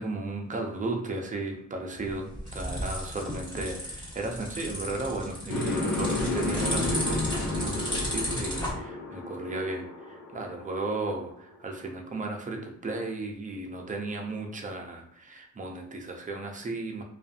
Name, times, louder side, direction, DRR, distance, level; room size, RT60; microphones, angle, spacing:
voice 1, 0.0-17.0, right 2 dB, 25° right, 2 dB, 0.5 m, -34 dB
sound 1, 1.9-8.7, equal, 15° left, 1.2 m, -34 dB
sound 2, 5.5-11.5, left 2 dB, 70° left, 0.7 m, -32 dB
2.5 x 2.4 x 2.4 m, 0.65 s
cardioid pair, 90°, 30 cm